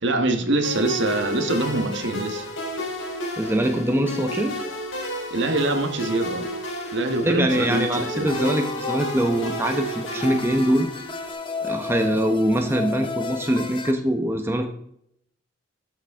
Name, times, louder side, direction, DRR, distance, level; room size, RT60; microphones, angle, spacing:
voice 1, 0.0-2.5 5.3-6.5 6.9-8.3, right 2 dB, 60° right, 1.4 m, -24 dB
sound 1, 0.6-11.3, equal, 75° left, 3.5 m, -32 dB
voice 2, 3.4-4.6 7.2-10.9 11.6-14.7, right 1 dB, 10° right, 0.9 m, -23 dB
sound 2, 8.3-13.9, left 4 dB, 25° left, 0.8 m, -33 dB
13.0 x 7.3 x 3.6 m
head